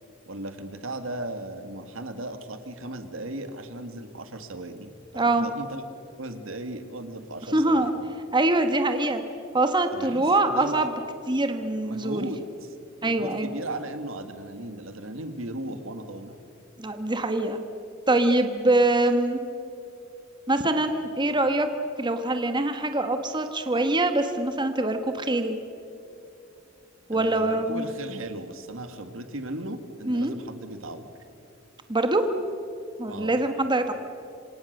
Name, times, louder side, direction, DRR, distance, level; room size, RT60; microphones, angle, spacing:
voice 1, 0.3-5.8 6.2-8.0 9.9-10.9 11.8-12.4 13.0-16.4 27.1-31.1 33.1-33.4, right 1 dB, 75° right, 8 dB, 2.0 m, -36 dB
voice 2, 5.1-5.5 7.5-7.9 8.3-9.2 9.5-10.9 11.3-12.3 13.0-13.6 16.8-17.6 18.1-19.4 20.5-21.7 22.0-25.5 27.1-27.9 30.1-30.3 31.9-32.2 33.0-33.9, right 2 dB, 25° right, 7 dB, 1.4 m, -24 dB
27.0 x 26.0 x 6.7 m, 2.8 s
head